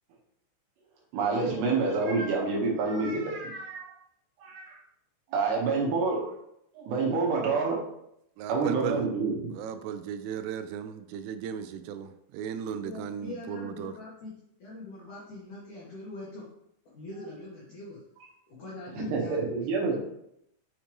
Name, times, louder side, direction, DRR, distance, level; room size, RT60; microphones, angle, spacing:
voice 1, 1.1-3.9 4.4-4.8 5.3-6.3 6.8-7.8 8.5-9.5 19.0-20.0, right 4 dB, 70° right, -2 dB, 3.0 m, -28 dB
voice 2, 8.4-9.0 9.5-13.9, right 8 dB, 85° right, 10 dB, 3.1 m, -36 dB
voice 3, 12.8-16.4 16.9-18.0 18.5-20.0, left 2 dB, 85° left, -6 dB, 1.7 m, -42 dB
6.6 x 6.4 x 3.0 m, 0.77 s
omnidirectional pair, 5.8 m